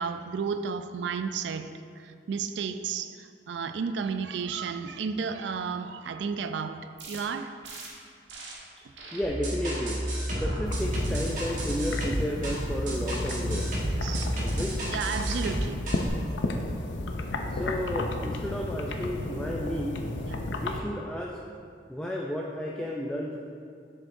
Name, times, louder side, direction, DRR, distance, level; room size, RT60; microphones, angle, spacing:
voice 1, 0.0-7.5 13.9-14.3 14.9-15.8 20.2-20.4, right 5 dB, 75° right, 9 dB, 0.4 m, -33 dB
sound 1, 7.0-7.2 7.6-7.9 8.3-8.5 9.0-9.2 9.6-9.9 10.3-10.6 11.1-11.5, right 3 dB, 90° right, 1.3 m, -43 dB
voice 2, 9.1-13.8 14.4-14.9 17.5-20.0 20.5-21.4 21.9-23.4, equal, 5° left, -2 dB, 0.4 m, -33 dB
sound 2, 9.2-16.1, equal, 45° right, 1.3 m, -31 dB
sound 3, 10.7-20.8, left 2 dB, 85° left, 0.5 m, -33 dB
7.9 x 7.1 x 2.6 m, 2.3 s
head